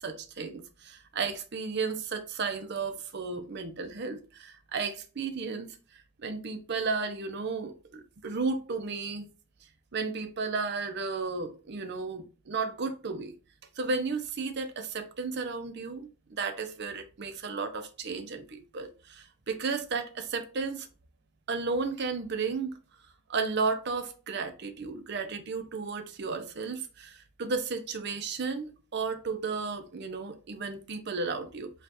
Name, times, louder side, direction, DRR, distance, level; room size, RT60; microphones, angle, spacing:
voice 1, 0.0-9.3 9.9-13.3 13.8-20.9 21.5-22.8 23.3-31.7, right 4 dB, 55° right, 0.6 m, -33 dB
5.2 x 2.4 x 2.8 m
head